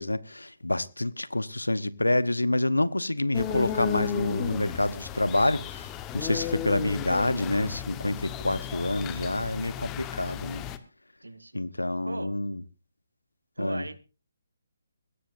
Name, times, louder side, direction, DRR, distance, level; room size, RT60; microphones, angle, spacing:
voice 1, 0.0-10.6 11.5-12.6 13.6-13.9, left 1 dB, 90° left, 0.9 m, -27 dB
sound 1, 3.3-10.8, left 10 dB, 20° left, 1.1 m, -35 dB
voice 2, 11.2-12.4 13.6-14.0, right 2 dB, 85° right, 1.4 m, -39 dB
21.5 x 16.5 x 2.6 m
figure-of-eight pair, 140°, 0 cm